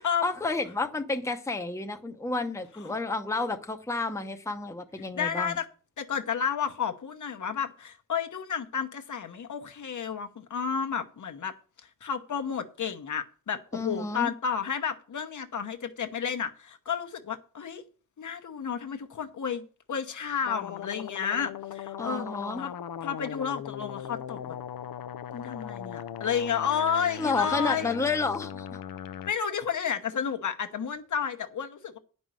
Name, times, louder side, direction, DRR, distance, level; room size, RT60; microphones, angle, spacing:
voice 1, 0.2-5.6 13.7-14.3 22.0-22.6 27.2-28.8, left 3 dB, 10° left, 0.8 m, -30 dB
voice 2, 5.1-5.7 6.0-11.5 12.0-17.8 18.2-22.2 22.6-22.7 23.0-24.6 25.3-28.0 29.2-32.0, left 7 dB, 60° left, 1.0 m, -31 dB
sound 1, 20.4-29.3, left 9 dB, 90° left, 0.6 m, -39 dB
10.0 x 5.4 x 7.5 m
wide cardioid pair, 175°, 33 cm